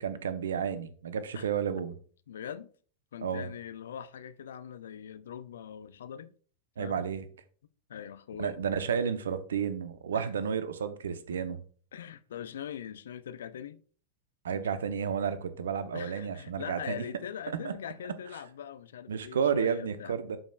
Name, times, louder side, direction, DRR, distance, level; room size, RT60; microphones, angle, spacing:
voice 1, 0.0-2.0 3.2-3.5 6.8-7.2 8.4-11.6 14.4-17.0 17.6-17.7 19.1-20.4, right 7 dB, 65° right, 0.7 m, -31 dB
voice 2, 2.3-2.7 3.1-6.3 6.8-7.1 7.9-8.6 10.1-10.3 11.9-13.8 14.5-14.7 15.9-20.2, left 9 dB, 65° left, 0.5 m, -42 dB
11.0 x 5.1 x 2.3 m
figure-of-eight pair, 90°, 0 cm